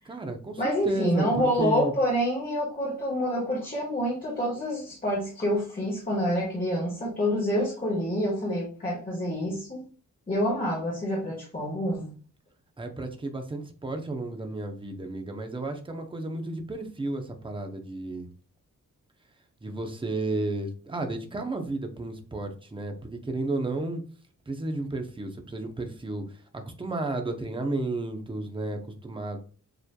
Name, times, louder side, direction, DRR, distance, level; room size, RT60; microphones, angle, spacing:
voice 1, 0.0-1.9 12.8-18.3 19.6-24.0 24.5-29.4, right 2 dB, 15° right, 4 dB, 0.7 m, -33 dB
voice 2, 0.6-9.8 10.3-12.1, equal, 25° left, -5 dB, 1.4 m, -27 dB
6.9 x 3.1 x 2.2 m, 0.40 s
wide cardioid pair, 140°, 33 cm